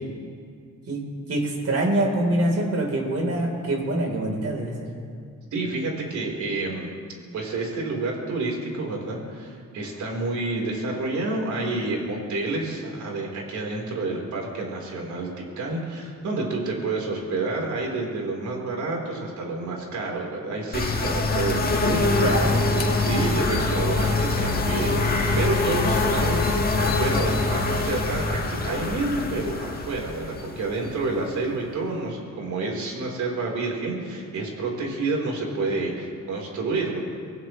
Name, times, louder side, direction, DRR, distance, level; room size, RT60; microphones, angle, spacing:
voice 1, 0.9-4.9 22.1-22.9, right 1 dB, 55° right, 1 dB, 4.0 m, -25 dB
voice 2, 5.5-7.0 7.3-22.3 23.0-26.4 26.7-37.0, right 2 dB, 70° right, -1 dB, 4.2 m, -29 dB
sound 1, 20.7-31.3, left 2 dB, 30° left, 1.9 m, -24 dB
24.0 x 16.5 x 3.3 m, 2.2 s
cardioid pair, 90°, 30 cm